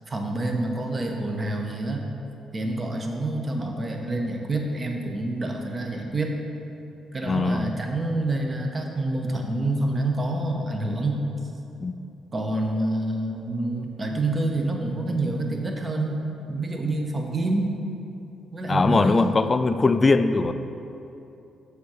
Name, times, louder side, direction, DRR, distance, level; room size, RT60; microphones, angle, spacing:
voice 1, 0.1-2.1 2.5-6.3 7.1-11.2 12.3-16.2 16.5-17.7 18.5-19.2, right 2 dB, 30° right, 2 dB, 0.9 m, -27 dB
voice 2, 7.2-7.7 11.8-11.9 18.7-20.5, left 3 dB, 30° left, 11 dB, 0.3 m, -21 dB
6.9 x 3.6 x 6.3 m, 2.9 s
cardioid pair, 90°, 0 cm